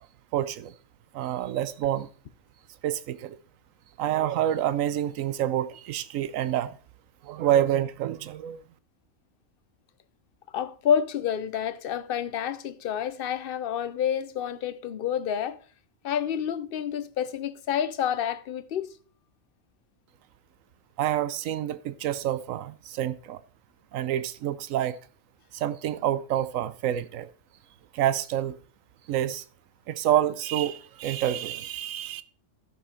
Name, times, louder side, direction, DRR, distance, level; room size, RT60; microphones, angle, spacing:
voice 1, 0.3-0.7 1.1-2.1 2.8-3.4 4.0-6.7 7.2-8.6 21.0-23.4 23.9-25.0 25.5-27.3 27.9-28.6 29.1-29.4 29.9-32.2, right 11 dB, 90° right, 1.0 m, -27 dB
voice 2, 10.5-15.6 16.0-18.9, left 8 dB, 55° left, 0.8 m, -28 dB
12.5 x 7.0 x 4.3 m
omnidirectional pair, 1.3 m